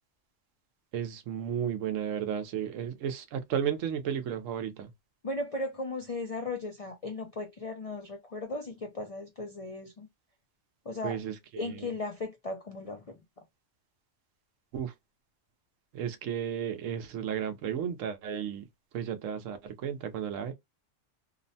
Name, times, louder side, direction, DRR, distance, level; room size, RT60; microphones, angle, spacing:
voice 1, 0.9-4.9 11.0-11.9 14.7-14.9 15.9-18.7 18.9-20.5, right 8 dB, 80° right, 1.0 m, -33 dB
voice 2, 5.2-10.1 10.9-11.2 11.6-13.1, left 2 dB, 60° left, 0.3 m, -36 dB
2.9 x 2.1 x 2.6 m
omnidirectional pair, 1.3 m